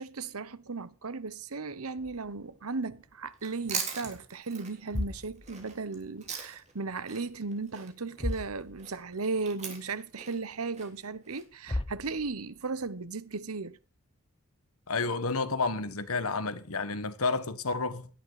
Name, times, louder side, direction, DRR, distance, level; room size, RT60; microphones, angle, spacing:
voice 1, 0.0-13.8, right 4 dB, 90° right, 1.0 m, -36 dB
sound 1, 2.0-3.6 3.9-4.2 4.7-6.5 6.8-7.5 7.8-7.9 8.1-9.1 9.5-9.6 10.2-10.3 11.3-11.4 11.7-12.7, left 1 dB, 25° left, 0.7 m, -39 dB
Chewing mastication, 3.3-6.8 7.1-11.4, right 6 dB, 30° right, 3.4 m, -40 dB
voice 2, 14.9-18.1, left 3 dB, 85° left, 1.5 m, -30 dB
17.5 x 11.5 x 4.9 m
head